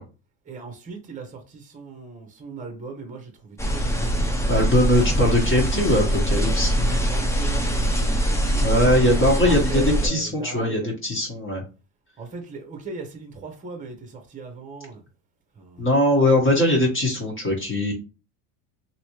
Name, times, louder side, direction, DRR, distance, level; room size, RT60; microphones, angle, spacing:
voice 1, 0.5-4.1 4.9-5.0 6.4-6.6 7.0-10.9 12.2-15.0 15.6-15.9, right 4 dB, 15° right, 0.9 m, -38 dB
sound 1, 3.6-10.1, right 1 dB, 5° left, 0.6 m, -23 dB
voice 2, 4.5-7.0 8.6-11.6 15.8-17.9, left 1 dB, 25° left, 1.4 m, -21 dB
3.0 x 2.8 x 3.1 m
supercardioid pair, 90°, 48 cm